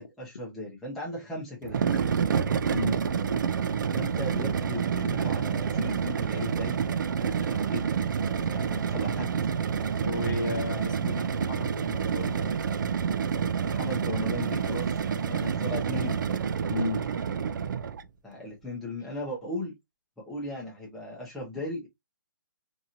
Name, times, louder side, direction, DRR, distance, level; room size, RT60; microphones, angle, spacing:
voice 1, 0.0-1.8 3.9-6.8 7.2-7.9 8.5-9.3 13.6-16.2 18.2-19.7 20.2-21.9, left 1 dB, ahead, 0.6 m, -37 dB
sound 1, 1.6-18.1, right 7 dB, 65° right, 0.4 m, -28 dB
voice 2, 10.0-12.7 16.7-17.0, left 4 dB, 65° left, 0.8 m, -34 dB
2.9 x 2.6 x 2.4 m
hypercardioid pair, 165°, 11 cm